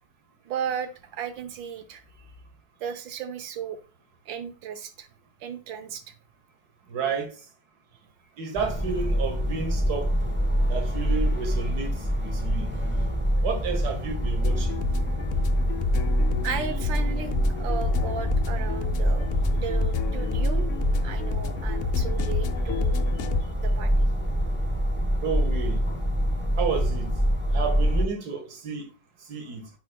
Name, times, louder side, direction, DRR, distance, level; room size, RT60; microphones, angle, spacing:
voice 1, 0.4-2.0 2.8-3.8 4.3-5.1 5.4-6.0 16.4-20.7 21.0-23.2 23.6-24.1, right 7 dB, 90° right, 1.7 m, -35 dB
voice 2, 6.9-7.4 8.4-10.1 10.7-12.7 13.4-14.9 25.2-25.8 26.6-27.1 27.5-28.9 29.3-29.7, right 5 dB, 60° right, 2.0 m, -31 dB
sound 1, 8.6-28.1, equal, 5° right, 1.3 m, -25 dB
sound 2, 14.4-23.4, left 10 dB, 80° left, 0.7 m, -32 dB
9.4 x 4.6 x 2.2 m
omnidirectional pair, 2.0 m